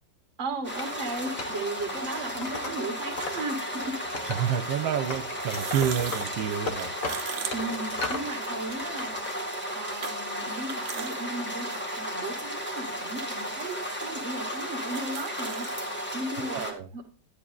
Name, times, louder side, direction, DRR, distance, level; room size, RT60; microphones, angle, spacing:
voice 1, 0.4-4.2 7.5-9.3 9.7-15.7 16.1-17.0, right 2 dB, 40° right, 1.6 m, -36 dB
sound 1, 0.6-16.7, equal, 5° left, 1.5 m, -34 dB
Wood, 0.7-3.4 3.7-4.8 5.1-8.3 8.7-9.4, left 3 dB, 50° left, 1.6 m, -37 dB
sound 2, 2.4-2.5 3.7-3.9 5.3-8.6 9.0-9.1 10.0-10.1 10.5-11.1 11.6-11.7 12.6-12.7 13.5-13.6 13.8-13.9 14.4-14.5 14.7-15.8, right 9 dB, 60° right, 0.8 m, -38 dB
voice 2, 4.3-7.0 16.5-16.9, right 9 dB, 80° right, 1.5 m, -29 dB
11.5 x 9.9 x 2.4 m
omnidirectional pair, 2.1 m